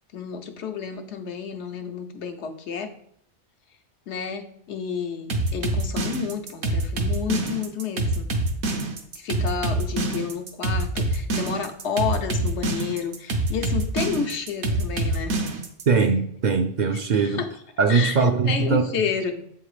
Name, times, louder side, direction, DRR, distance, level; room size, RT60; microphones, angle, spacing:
voice 1, 0.1-2.9 4.1-8.3 9.1-15.4 17.2-17.5 17.9-19.5, left 6 dB, 85° left, 6 dB, 1.1 m, -30 dB
sound 1, 5.3-15.8, right 2 dB, 80° right, 1.1 m, -25 dB
voice 2, 15.9-17.4 17.8-19.0, right 5 dB, 55° right, 7 dB, 0.5 m, -21 dB
7.6 x 3.5 x 4.8 m, 0.67 s
omnidirectional pair, 1.1 m